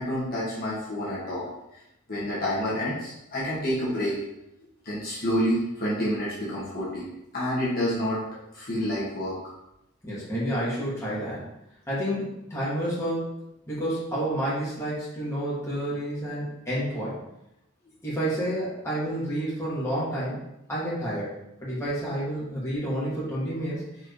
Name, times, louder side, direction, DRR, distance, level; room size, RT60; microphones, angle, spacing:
voice 1, 0.0-1.8 2.1-4.2 4.8-7.1 7.3-8.2 8.5-9.5, equal, 45° left, -8 dB, 1.9 m, -28 dB
voice 2, 10.0-11.4 11.9-13.3 13.7-17.2 18.0-20.4 20.7-21.3 21.6-23.8, right 1 dB, 15° left, -9 dB, 2.4 m, -29 dB
4.8 x 4.6 x 4.9 m, 0.86 s
head